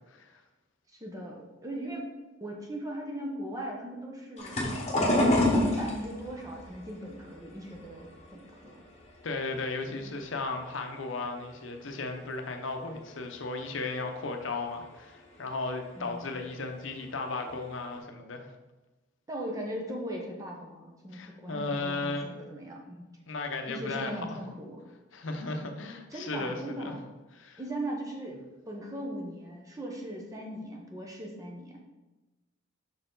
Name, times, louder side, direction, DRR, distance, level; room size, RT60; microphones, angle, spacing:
voice 1, 0.1-0.4 9.2-18.5 21.1-22.3 23.3-24.4 25.1-27.0 27.3-27.6, left 3 dB, 75° left, 5 dB, 0.7 m, -35 dB
voice 2, 0.9-2.1 2.4-4.6 5.5-8.8 9.9-10.1 16.0-16.4 19.3-23.1 23.7-24.8 26.1-27.0 27.6-28.4 28.7-31.8, right 1 dB, 15° right, -1 dB, 0.9 m, -39 dB
sound 1, 4.4-9.5 9.8-10.7 11.2-11.6 11.8-11.9 13.1-13.2 13.8-13.9 14.4-14.5 14.7-15.0 16.2-16.4 17.0-17.1 17.5-18.0, left 1 dB, 35° left, 1.1 m, -28 dB
5.8 x 4.3 x 3.9 m, 1.1 s
head